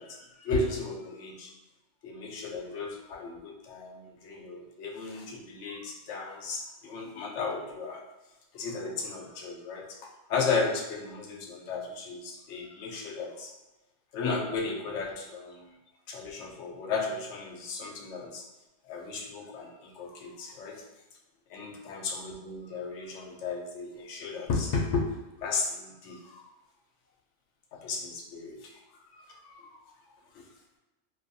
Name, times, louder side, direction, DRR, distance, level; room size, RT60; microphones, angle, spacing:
voice 1, 0.0-1.5 2.0-8.0 8.5-10.0 10.3-13.5 14.1-15.7 16.1-18.4 18.8-20.8 21.5-25.1 25.4-26.4 27.7-29.8 30.3-30.5, left 4 dB, 75° left, 0 dB, 0.9 m, -34 dB
2.5 x 2.3 x 2.5 m, 1.0 s
omnidirectional pair, 1.2 m